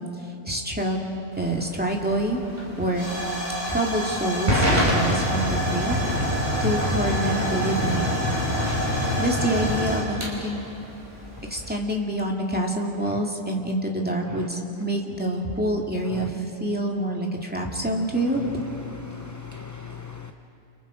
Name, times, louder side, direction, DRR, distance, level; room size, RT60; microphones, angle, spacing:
voice 1, 0.5-1.0 1.4-2.4 2.8-3.1 3.7-6.0 6.6-8.1 9.2-10.6 11.5-18.4, right 1 dB, 10° right, -1 dB, 2.4 m, -26 dB
Hiss / Fire / Tick, 1.3-11.7, equal, 40° right, 5.8 m, -26 dB
voice 2, 18.8-20.3, left 6 dB, 20° left, 5 dB, 0.7 m, -39 dB
29.5 x 29.5 x 5.1 m, 2.8 s
omnidirectional pair, 1.2 m